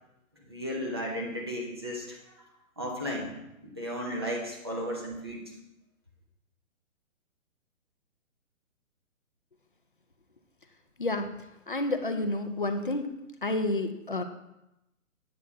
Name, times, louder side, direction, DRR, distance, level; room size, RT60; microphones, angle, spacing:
voice 1, 0.5-2.2 2.8-3.3 3.6-5.4, equal, 20° right, -2 dB, 0.7 m, -34 dB
voice 2, 11.0-13.1 13.4-14.2, left 2 dB, 40° left, 7 dB, 0.4 m, -30 dB
8.5 x 6.0 x 3.5 m, 0.90 s
hypercardioid pair, 180°, 41 cm